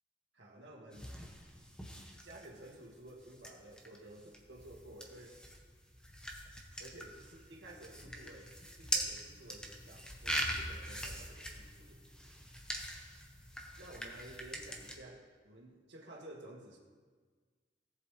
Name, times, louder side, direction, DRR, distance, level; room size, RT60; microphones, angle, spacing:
voice 1, 0.3-1.1 2.2-5.4 6.8-8.5 8.8-12.0 13.8-16.8, right 1 dB, 90° right, -1 dB, 1.9 m, -53 dB
sound 1, 0.9-14.9, equal, 5° left, 1.0 m, -43 dB
17.5 x 7.7 x 3.3 m, 1.5 s
head